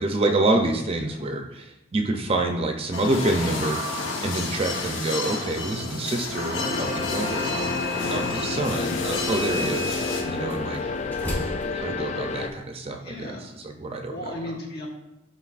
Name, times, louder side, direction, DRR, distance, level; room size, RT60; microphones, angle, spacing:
voice 1, 0.0-7.6 8.1-10.8 11.7-14.4, right 2 dB, 30° right, 4 dB, 0.5 m, -27 dB
sound 1, 2.9-10.2, left 3 dB, 75° left, 0.9 m, -31 dB
sound 2, 6.5-12.5, left 4 dB, 35° left, 0.3 m, -30 dB
sound 3, 6.8-12.7, equal, 10° left, 0.7 m, -35 dB
voice 2, 8.8-9.1 10.8-10.9 13.0-13.5 14.1-14.9, left 1 dB, 50° left, -1 dB, 1.3 m, -36 dB
11.0 x 3.9 x 2.4 m, 0.93 s
head